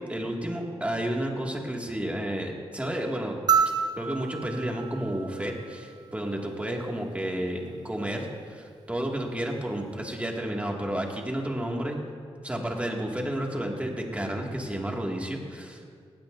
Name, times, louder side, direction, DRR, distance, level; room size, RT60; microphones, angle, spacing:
voice 1, 0.0-3.4 4.0-12.0 12.4-15.9, right 1 dB, 10° right, 0 dB, 2.1 m, -31 dB
sound 1, 3.5-6.0 7.7-7.8, right 7 dB, 40° right, 0.6 m, -28 dB
18.0 x 16.5 x 2.6 m, 2.1 s
wide cardioid pair, 85°, 11 cm